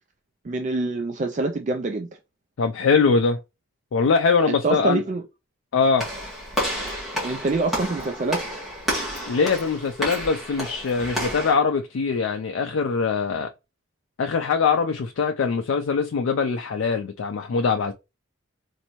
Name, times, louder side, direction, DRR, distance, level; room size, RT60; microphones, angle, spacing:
voice 1, 0.4-2.1 4.5-5.2 7.2-8.6, right 3 dB, 35° right, 0.3 m, -25 dB
voice 2, 2.6-3.4 3.9-5.0 5.7-6.1 9.3-13.5 14.2-17.9, left 5 dB, 75° left, 0.4 m, -22 dB
Walk footsteps / Slam, 6.0-11.5, equal, ahead, 1.5 m, -30 dB
4.2 x 2.6 x 2.9 m
head